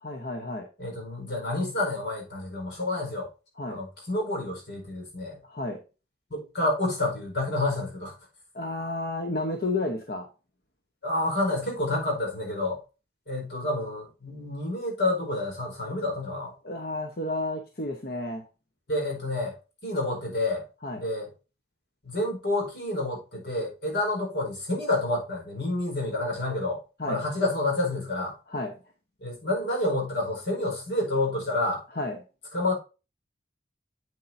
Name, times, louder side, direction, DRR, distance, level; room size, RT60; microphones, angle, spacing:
voice 1, 0.0-0.7 3.6-3.8 5.4-5.8 8.5-10.3 16.6-18.4 20.8-21.0 27.0-27.2 28.5-28.7 31.9-32.2, left 2 dB, 55° left, 1.1 m, -31 dB
voice 2, 0.8-3.3 3.7-5.4 6.3-8.1 11.0-12.8 13.3-16.5 18.9-19.6 19.8-20.6 21.0-21.3 22.0-26.8 27.1-28.3 29.2-31.8 32.5-32.7, left 2 dB, 75° left, 4.8 m, -29 dB
8.5 x 8.3 x 2.7 m
head